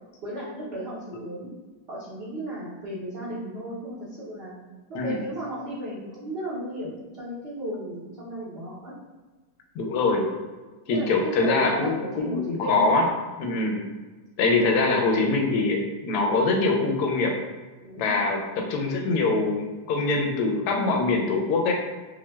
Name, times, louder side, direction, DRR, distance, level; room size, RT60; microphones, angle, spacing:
voice 1, 0.2-1.5 1.9-4.5 4.9-8.9 10.9-13.0 17.8-18.3, right 1 dB, 70° right, -8 dB, 0.5 m, -35 dB
voice 2, 9.7-10.3 10.9-13.1 13.4-13.8 14.4-17.4 18.0-21.7, left 3 dB, 70° left, 1 dB, 1.0 m, -23 dB
5.8 x 2.2 x 2.3 m, 1.3 s
omnidirectional pair, 2.1 m